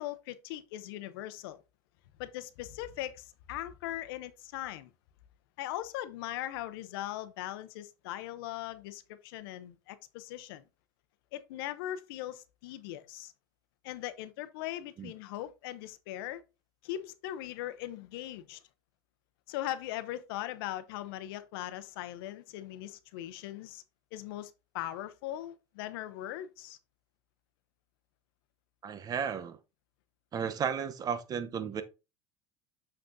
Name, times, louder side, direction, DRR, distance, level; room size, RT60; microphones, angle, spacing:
voice 1, 0.0-1.6 2.2-4.9 5.6-10.6 11.3-13.3 13.8-16.4 16.8-18.6 19.5-23.8 24.1-26.8, left 13 dB, 85° left, 0.7 m, -40 dB
voice 2, 28.8-29.6 30.3-31.8, right 7 dB, 35° right, 0.8 m, -34 dB
6.6 x 5.9 x 2.7 m
supercardioid pair, 125°, 12 cm